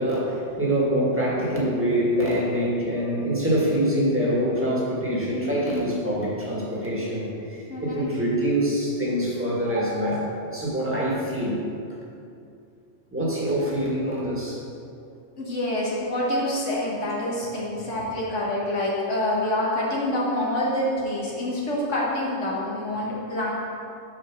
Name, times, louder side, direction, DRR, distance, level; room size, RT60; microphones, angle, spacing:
voice 1, 0.0-11.6 13.1-14.6, equal, 10° right, -6 dB, 1.6 m, -25 dB
voice 2, 7.7-8.1 15.4-23.5, left 1 dB, 80° left, -5 dB, 1.6 m, -26 dB
6.1 x 4.7 x 6.0 m, 2.5 s
omnidirectional pair, 1.2 m